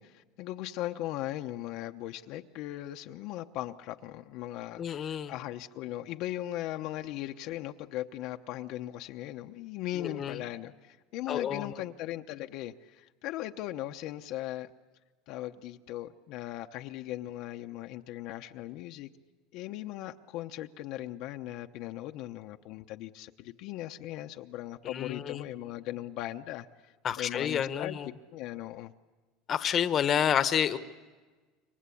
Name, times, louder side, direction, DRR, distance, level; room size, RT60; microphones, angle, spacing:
voice 1, 0.0-14.7 15.3-19.1 19.5-28.0 28.3-28.9, left 14 dB, 55° left, 5 dB, 0.8 m, -38 dB
voice 2, 4.8-5.3 9.9-10.4 11.3-11.7 24.8-25.5 27.0-28.1 29.5-30.8, left 9 dB, 30° left, 12 dB, 1.1 m, -29 dB
27.5 x 24.5 x 8.5 m, 1.3 s
supercardioid pair, 145°, 0 cm